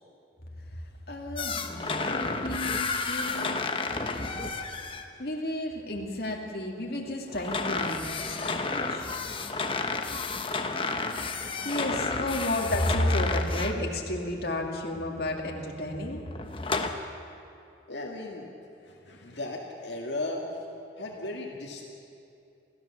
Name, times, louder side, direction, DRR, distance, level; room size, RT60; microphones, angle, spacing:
voice 1, 0.7-3.9 5.2-9.1 11.0-16.3, left 1 dB, 55° left, 0 dB, 2.4 m, -32 dB
sound 1, 1.4-5.1 7.3-13.9 16.3-16.9, left 4 dB, 30° left, 1.1 m, -31 dB
voice 2, 17.9-18.5 18.8-20.7 21.0-21.9, left 2 dB, 70° left, -1 dB, 2.0 m, -36 dB
29.0 x 14.5 x 7.2 m, 2.6 s
head